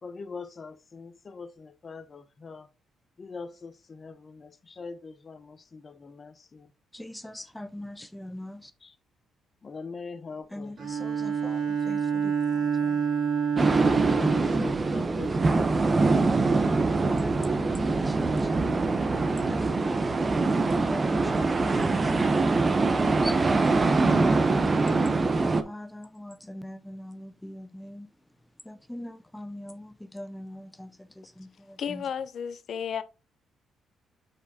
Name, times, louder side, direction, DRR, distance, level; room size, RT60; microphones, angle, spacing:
voice 1, 0.0-2.7 3.2-6.7 8.8-8.9 9.6-10.9 14.0-16.3, left 4 dB, 40° left, 0.9 m, -43 dB
voice 2, 6.9-8.7 10.5-13.0 16.8-18.8 19.5-19.9 20.6-24.6 25.4-28.1 28.7-32.0, left 1 dB, 5° left, 0.6 m, -42 dB
Bowed string instrument, 10.8-15.4, right 6 dB, 65° right, 2.8 m, -28 dB
sound 1, 13.6-25.6, right 3 dB, 30° right, 0.8 m, -24 dB
voice 3, 31.8-33.0, left 8 dB, 60° left, 0.6 m, -33 dB
7.9 x 4.6 x 2.8 m
cardioid pair, 85°, 0 cm